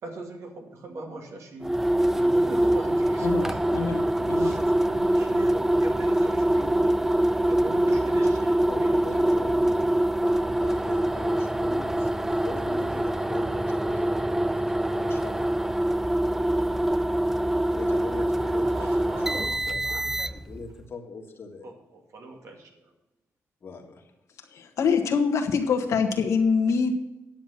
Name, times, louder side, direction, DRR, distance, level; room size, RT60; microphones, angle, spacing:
voice 1, 0.0-9.0 18.7-20.3 21.6-22.9, right 2 dB, 65° right, 1 dB, 2.4 m, -41 dB
sound 1, 1.6-20.6, right 1 dB, 5° right, 0.3 m, -24 dB
voice 2, 3.2-4.5 24.5-26.9, left 5 dB, 70° left, 3 dB, 1.5 m, -25 dB
voice 3, 8.7-15.5 17.7-21.7 23.6-24.1, left 4 dB, 50° left, 3 dB, 1.8 m, -41 dB
10.5 x 7.1 x 5.8 m, 0.95 s
cardioid pair, 85°, 5 cm